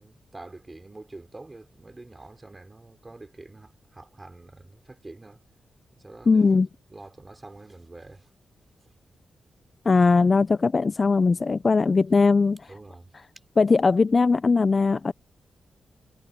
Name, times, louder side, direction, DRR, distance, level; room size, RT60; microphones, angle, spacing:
voice 1, 0.0-5.4 5.9-6.6 6.9-8.3 12.7-13.1, right 2 dB, 20° right, 5.7 m, -46 dB
voice 2, 6.3-6.7 9.9-12.6 13.6-15.1, left 4 dB, 35° left, 0.4 m, -20 dB
cardioid pair, 105°, 0 cm